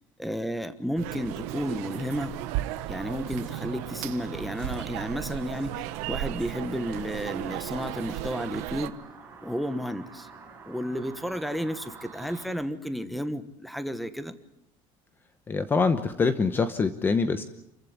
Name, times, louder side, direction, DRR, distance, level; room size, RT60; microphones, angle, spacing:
voice 1, 0.2-2.3 2.9-8.9 9.4-10.3 10.7-14.3, equal, ahead, 11 dB, 1.2 m, -32 dB
sound 1, 1.0-8.9, right 16 dB, 80° right, 1.1 m, -35 dB
sound 2, 1.1-12.5, right 5 dB, 15° right, 5.5 m, -48 dB
voice 2, 15.5-17.4, left 4 dB, 15° left, 11 dB, 1.0 m, -24 dB
28.5 x 15.0 x 9.7 m, 0.77 s
cardioid pair, 170°, 12 cm